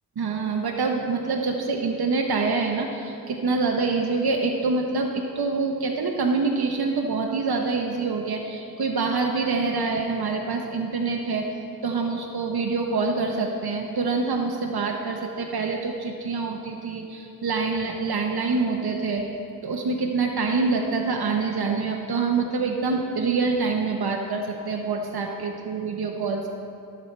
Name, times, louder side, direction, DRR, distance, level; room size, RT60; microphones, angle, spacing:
voice 1, 0.2-11.5 11.8-19.3 19.6-26.5, right 4 dB, 85° right, 2 dB, 0.7 m, -26 dB
11.5 x 7.1 x 4.3 m, 2.7 s
wide cardioid pair, 45°, 37 cm